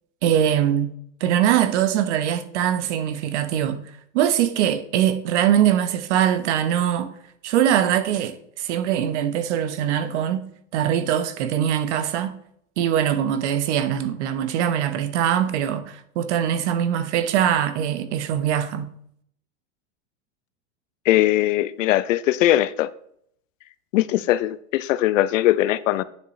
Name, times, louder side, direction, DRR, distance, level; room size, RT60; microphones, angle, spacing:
voice 1, 0.2-0.9 1.2-3.8 4.1-7.1 7.4-12.4 12.8-18.9, right 10 dB, 65° right, 1.0 m, -22 dB
voice 2, 21.1-22.9 23.9-26.0, left 14 dB, 85° left, 0.6 m, -20 dB
9.5 x 7.1 x 3.2 m
supercardioid pair, 145°, 37 cm